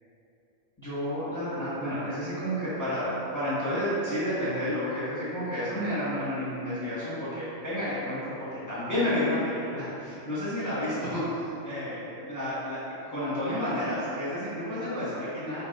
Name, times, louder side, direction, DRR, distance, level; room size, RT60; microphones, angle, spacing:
voice 1, 0.8-15.6, left 1 dB, 15° left, -13 dB, 1.4 m, -31 dB
6.7 x 5.9 x 2.5 m, 2.9 s
omnidirectional pair, 1.3 m